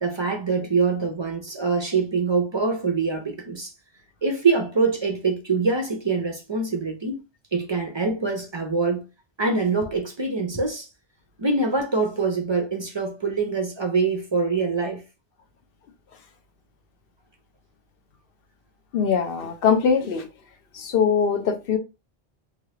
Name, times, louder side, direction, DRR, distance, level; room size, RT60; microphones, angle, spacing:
voice 1, 0.0-3.7 4.2-7.2 7.5-9.0 9.4-10.9 11.4-15.0, right 4 dB, 45° right, 0.4 m, -24 dB
voice 2, 18.9-20.3 20.7-21.8, left 6 dB, 65° left, 0.8 m, -22 dB
3.2 x 2.4 x 2.8 m
omnidirectional pair, 1.1 m